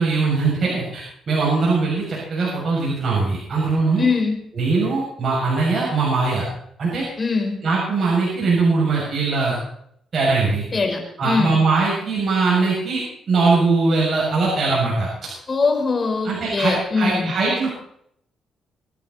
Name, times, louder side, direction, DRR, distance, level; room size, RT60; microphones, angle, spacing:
voice 1, 0.0-4.1 4.6-6.4 6.8-7.1 7.6-9.6 10.1-10.7 11.2-15.1 16.2-17.7, right 3 dB, 45° right, -5 dB, 7.2 m, -21 dB
voice 2, 4.0-4.4 7.2-7.6 10.7-11.6 15.5-17.3, left 4 dB, 35° left, 3 dB, 4.9 m, -22 dB
25.0 x 10.5 x 4.3 m, 0.71 s
cardioid pair, 90°, 0 cm